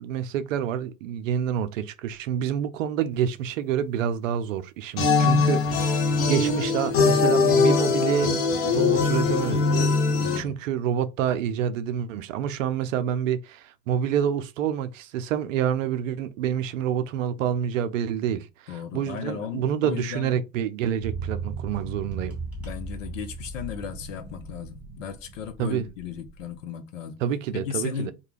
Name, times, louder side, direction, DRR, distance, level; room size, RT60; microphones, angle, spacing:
voice 1, 0.0-9.9 10.4-22.4 25.6-25.9 27.2-28.1, right 9 dB, 70° right, 0.5 m, -28 dB
sound 1, 5.0-10.4, left 4 dB, 35° left, 0.7 m, -21 dB
voice 2, 5.2-5.6 10.1-10.5 18.7-20.4 22.6-27.2 27.5-28.1, left 8 dB, 70° left, 0.8 m, -36 dB
sound 2, 21.0-26.6, right 3 dB, 5° right, 1.4 m, -37 dB
2.3 x 2.3 x 3.1 m
hypercardioid pair, 100°, 40 cm